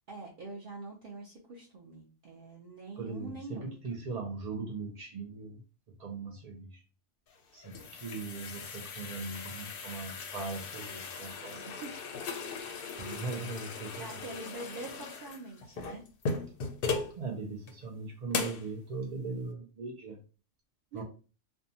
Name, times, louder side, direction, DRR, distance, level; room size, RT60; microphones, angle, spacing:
voice 1, 0.1-3.8 7.6-7.9 11.7-11.9 14.0-16.0 20.9-21.0, right 2 dB, 55° right, -3 dB, 0.7 m, -44 dB
voice 2, 3.0-5.6 6.0-6.8 7.5-11.7 13.0-14.2 17.2-20.2 20.9-21.0, right 4 dB, 85° right, 2 dB, 0.3 m, -39 dB
sound 1, 7.3-17.2 17.7-17.8 18.3-18.7, left 4 dB, 60° left, 0.6 m, -38 dB
2.6 x 2.2 x 2.7 m, 0.36 s
omnidirectional pair, 1.2 m